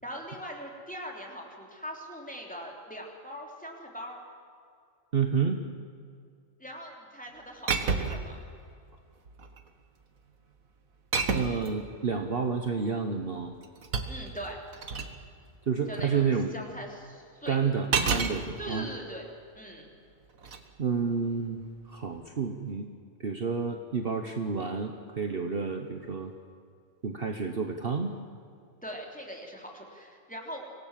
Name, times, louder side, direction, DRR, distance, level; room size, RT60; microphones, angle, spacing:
voice 1, 0.0-4.2 6.6-8.4 14.1-14.6 15.9-17.6 18.6-19.9 28.8-30.6, equal, 5° left, 0 dB, 3.4 m, -41 dB
voice 2, 5.1-5.6 11.3-13.5 15.7-16.5 17.5-18.9 20.8-21.6 21.9-22.9 23.2-26.3 27.0-28.1, right 5 dB, 45° right, 5 dB, 1.3 m, -30 dB
sound 1, 7.7-8.3 9.3-9.7 11.1-11.7 13.4-15.2 17.9-18.4 20.4-20.6, right 5 dB, 80° right, 1.9 m, -29 dB
25.5 x 17.5 x 7.6 m, 2.3 s
omnidirectional pair, 1.4 m